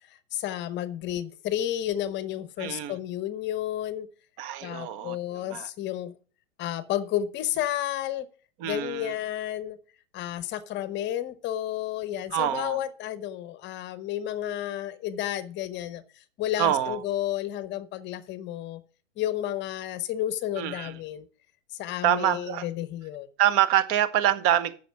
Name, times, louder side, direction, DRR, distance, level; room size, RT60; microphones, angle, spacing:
voice 1, 0.3-4.1 4.6-6.2 6.6-8.3 8.6-9.8 10.1-16.0 16.4-18.8 19.2-21.3 21.7-23.3, left 12 dB, 30° left, 0.9 m, -31 dB
voice 2, 2.6-3.0 4.4-5.7 8.6-9.1 12.3-12.8 16.6-17.0 20.6-21.0 22.0-22.7 23.4-24.8, right 11 dB, 35° right, 1.0 m, -26 dB
9.3 x 6.5 x 6.9 m
hypercardioid pair, 115°, 39 cm